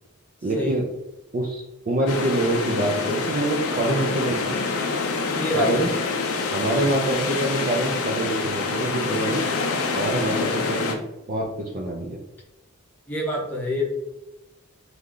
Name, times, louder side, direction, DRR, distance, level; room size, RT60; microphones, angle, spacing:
voice 1, 0.4-0.8 1.3-4.4 5.5-5.9 6.5-9.4 9.9-11.0 11.3-11.5 11.7-12.2, right 1 dB, 40° right, 0 dB, 0.4 m, -25 dB
sound 1, 2.1-10.9, left 4 dB, 85° left, 0.5 m, -26 dB
voice 2, 5.4-5.9 13.1-13.8, equal, 10° left, -3 dB, 0.7 m, -26 dB
3.1 x 2.4 x 3.7 m, 0.93 s
head